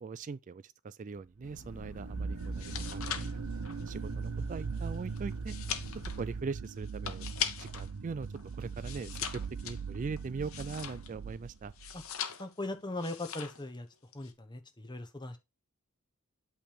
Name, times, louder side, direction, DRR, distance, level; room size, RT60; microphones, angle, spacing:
voice 1, 0.0-3.3 3.9-5.5 6.2-7.3 7.6-8.3 8.5-11.7, right 4 dB, 35° right, 0.3 m, -40 dB
sound 1, 1.4-6.4, left 2 dB, 85° left, 1.1 m, -50 dB
sound 2, 1.4-12.1, right 5 dB, 90° right, 0.6 m, -40 dB
sound 3, 2.4-7.9 8.2-11.3 11.7-12.6 13.0-13.7 13.9-14.3, left 8 dB, 65° left, 1.0 m, -40 dB
voice 2, 12.4-13.9 14.1-15.4, left 2 dB, 20° left, 1.0 m, -39 dB
8.6 x 3.4 x 5.1 m
head